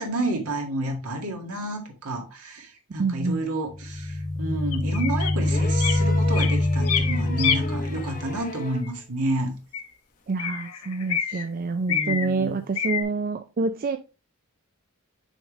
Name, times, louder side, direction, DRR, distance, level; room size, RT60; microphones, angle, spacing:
voice 1, 0.0-9.5 11.3-11.4 11.9-12.6, right 1 dB, 75° right, 2 dB, 1.9 m, -30 dB
voice 2, 3.0-3.4 10.3-14.0, right 4 dB, 40° right, 8 dB, 0.4 m, -27 dB
sound 1, 3.7-8.5, left 2 dB, 15° left, 0.5 m, -25 dB
sound 2, 4.7-5.3 5.8-6.0 6.3-7.6 8.8-8.9 9.7-9.9 10.4-11.4 11.9-12.3 12.8-13.0, left 8 dB, 80° left, 0.9 m, -27 dB
sound 3, 5.4-9.0 10.3-10.4, left 1 dB, 40° left, 0.8 m, -36 dB
6.3 x 5.0 x 3.1 m, 0.30 s
head